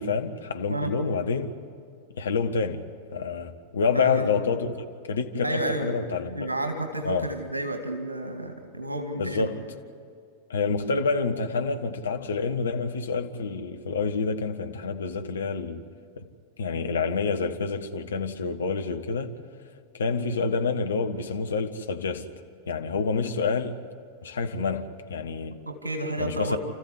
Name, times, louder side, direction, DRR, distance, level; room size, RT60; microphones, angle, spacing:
voice 1, 0.0-1.5 2.1-6.3 7.0-7.3 9.2-9.6 10.5-15.8 16.2-16.3 16.6-19.3 19.9-22.3 22.7-23.8 24.2-25.6 26.2-26.6, left 4 dB, 70° left, 1.3 m, -28 dB
voice 2, 3.9-4.3 5.4-5.9 6.3-9.5 25.5-26.6, right 1 dB, 80° right, 2.2 m, -31 dB
30.0 x 14.5 x 9.8 m
figure-of-eight pair, 90°, 0 cm